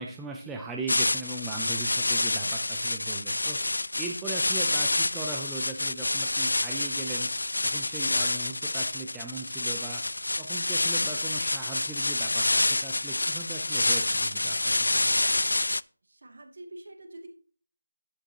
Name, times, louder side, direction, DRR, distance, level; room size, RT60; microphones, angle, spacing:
voice 1, 0.0-3.6 4.0-7.3 7.6-10.0 10.4-15.2, right 3 dB, 5° right, 1 dB, 0.5 m, -39 dB
sound 1, 0.9-15.8, left 2 dB, 80° left, 0.3 m, -28 dB
voice 2, 16.0-17.3, right 1 dB, 50° right, 5 dB, 2.4 m, -45 dB
11.0 x 9.1 x 2.9 m, 0.43 s
figure-of-eight pair, 175°, 0 cm